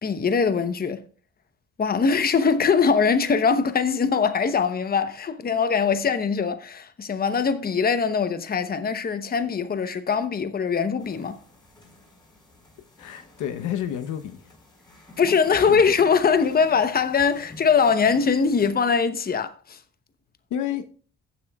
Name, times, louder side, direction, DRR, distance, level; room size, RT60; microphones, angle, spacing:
voice 1, 0.0-1.0 1.8-11.4 15.2-19.8, left 5 dB, 30° left, 0.8 m, -22 dB
sound 1, 11.0-18.7, left 2 dB, 15° left, 4.6 m, -47 dB
voice 2, 13.0-14.5 15.7-15.8 20.5-20.9, left 10 dB, 80° left, 0.9 m, -30 dB
15.5 x 7.3 x 2.3 m
cardioid pair, 90°, 30 cm